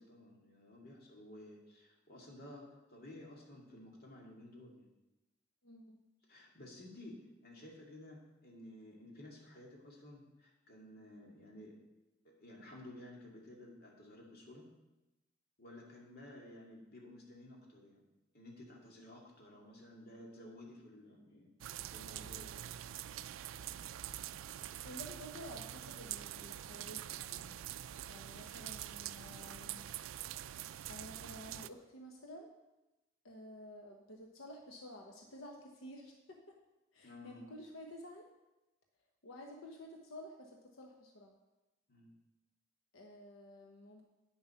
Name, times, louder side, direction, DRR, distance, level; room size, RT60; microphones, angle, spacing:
voice 1, 0.0-4.9 6.3-11.7 12.2-14.6 15.6-18.0 18.3-21.5 21.9-22.7 23.0-23.2 37.0-37.5 41.9-42.1, left 1 dB, 50° left, -1 dB, 2.2 m, -54 dB
voice 2, 5.6-6.0 24.8-29.8 30.9-32.5 33.2-36.6 36.9-38.3 39.2-41.4 42.9-44.1, left 1 dB, 85° left, 2 dB, 1.0 m, -52 dB
sound 1, 21.6-31.7, right 12 dB, 80° right, 0.3 m, -45 dB
8.6 x 7.2 x 5.7 m, 1.0 s
head